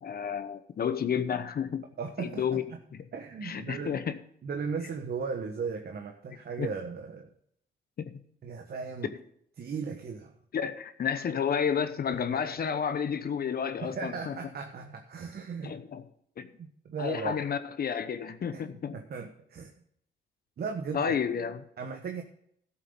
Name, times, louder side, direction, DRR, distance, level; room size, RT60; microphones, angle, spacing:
voice 1, 0.0-1.8 2.2-2.6 2.9-3.0 3.4-4.2 6.6-6.7 8.0-8.2 10.5-14.4 15.6-16.0 16.4-16.5 17.0-19.0 20.9-21.6, left 7 dB, 50° left, 11 dB, 0.9 m, -31 dB
voice 2, 2.0-2.8 3.1-4.0 4.4-7.3 8.4-9.1 9.6-10.3 13.8-15.8 16.6-17.4 18.5-18.6 18.9-19.7 20.6-21.1 21.8-22.2, right 5 dB, 55° right, 4 dB, 1.3 m, -36 dB
12.5 x 7.6 x 5.2 m, 0.68 s
supercardioid pair, 65°, 20 cm